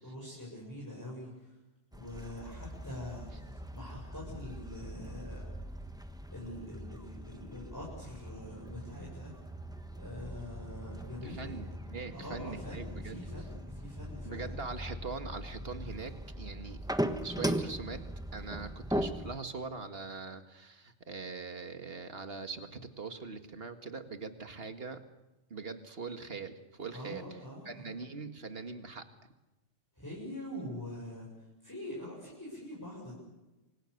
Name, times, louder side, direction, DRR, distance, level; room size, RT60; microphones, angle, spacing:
voice 1, 0.0-1.5 1.9-5.5 6.3-9.3 9.9-11.5 12.1-14.6 26.9-27.9 30.0-31.3 31.6-33.3, left 1 dB, 15° left, -5 dB, 7.2 m, -44 dB
sound 1, 1.9-19.4, equal, 5° right, 1.2 m, -40 dB
voice 2, 11.2-13.2 14.2-16.8 17.2-18.1 18.3-25.0 25.5-27.4 27.7-29.1, right 4 dB, 55° right, 7 dB, 2.1 m, -42 dB
28.5 x 25.0 x 6.7 m, 1.0 s
omnidirectional pair, 1.2 m